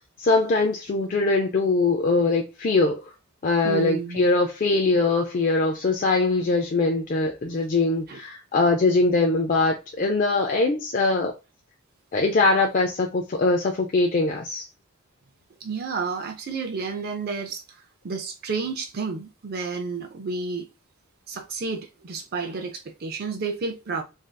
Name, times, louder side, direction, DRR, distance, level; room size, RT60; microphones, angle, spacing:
voice 1, 0.2-3.0 3.4-11.3 12.1-14.7, left 3 dB, 40° left, 0.4 m, -22 dB
voice 2, 3.6-4.3 8.1-8.2 15.6-20.7 21.3-24.0, right 4 dB, 45° right, 0.4 m, -31 dB
3.3 x 2.6 x 2.2 m
head